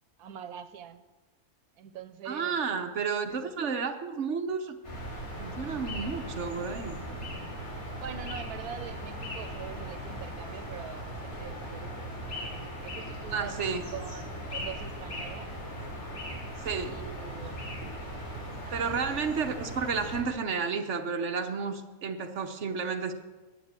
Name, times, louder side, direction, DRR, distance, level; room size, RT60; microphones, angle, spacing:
voice 1, 0.2-1.0 1.8-2.6 8.0-15.5 16.8-17.6 18.6-19.2, right 8 dB, 85° right, 11 dB, 1.2 m, -44 dB
voice 2, 2.2-4.8 5.4-7.4 13.3-13.8 16.6-16.9 18.7-23.1, right 5 dB, 55° right, 6 dB, 1.2 m, -32 dB
sound 1, 4.8-20.2, equal, 65° left, 3.9 m, -38 dB
9.6 x 8.7 x 8.1 m, 1.3 s
omnidirectional pair, 1.6 m